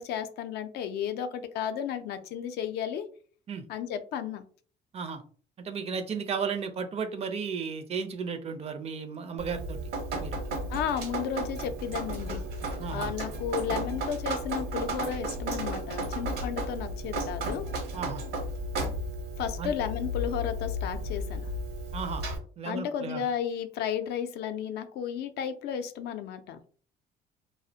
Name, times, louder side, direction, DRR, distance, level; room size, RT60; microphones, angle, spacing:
voice 1, 0.0-3.1 3.7-4.4 10.7-12.4 12.9-17.7 19.4-21.5 22.7-26.6, left 8 dB, 75° left, 9 dB, 0.4 m, -33 dB
voice 2, 5.6-9.8 10.1-10.4 12.8-13.1 17.9-18.3 19.6-19.7 21.9-22.3 22.6-23.3, right 6 dB, 40° right, 8 dB, 0.4 m, -34 dB
Drip, 9.4-22.4, right 1 dB, 70° right, 0.8 m, -34 dB
2.4 x 2.0 x 2.6 m, 0.42 s
cardioid pair, 110°, 17 cm